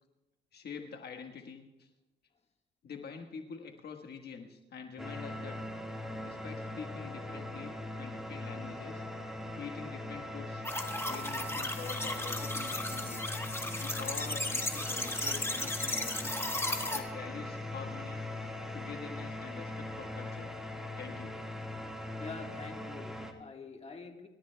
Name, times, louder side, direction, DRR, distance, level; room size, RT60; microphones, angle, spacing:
voice 1, 0.5-1.9 2.8-5.6 6.2-9.0 9.6-10.7 11.0-13.3 13.8-16.3 16.9-18.2 18.7-20.5 21.0-21.4, left 6 dB, 55° left, 4 dB, 1.4 m, -46 dB
sound 1, 5.0-23.3, left 1 dB, 5° right, 1.6 m, -40 dB
sound 2, 10.6-17.0, left 2 dB, 15° left, 1.5 m, -35 dB
voice 2, 22.2-24.3, left 4 dB, 30° left, 3 dB, 1.6 m, -46 dB
26.5 x 13.5 x 2.3 m, 1.0 s
cardioid pair, 90°, 20 cm